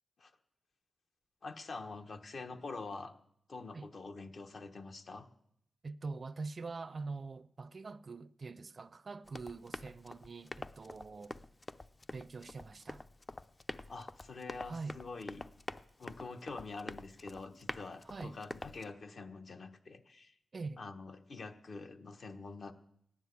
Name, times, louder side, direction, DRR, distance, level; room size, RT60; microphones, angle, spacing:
voice 1, 1.4-3.1 3.5-5.3 13.9-15.5 16.0-20.3 20.8-22.7, left 3 dB, 60° left, 1.2 m, -46 dB
voice 2, 5.8-11.4 12.1-13.0 14.6-15.0 18.0-18.4 20.5-20.8, right 4 dB, 45° right, 0.5 m, -44 dB
Run, 9.3-18.9, left 2 dB, 30° left, 0.5 m, -47 dB
14.5 x 10.0 x 8.3 m
wide cardioid pair, 100°, 0 cm